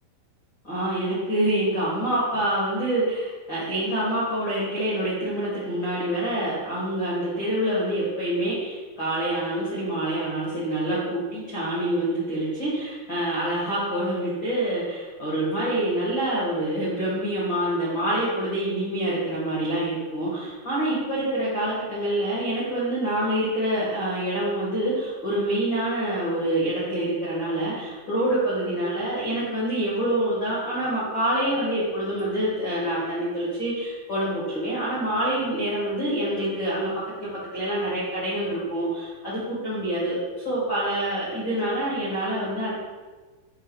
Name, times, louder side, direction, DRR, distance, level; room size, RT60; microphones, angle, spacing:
voice 1, 0.6-36.9 37.2-42.7, right 1 dB, 80° left, -9 dB, 1.0 m, -26 dB
8.9 x 3.3 x 4.9 m, 1.3 s
omnidirectional pair, 5.8 m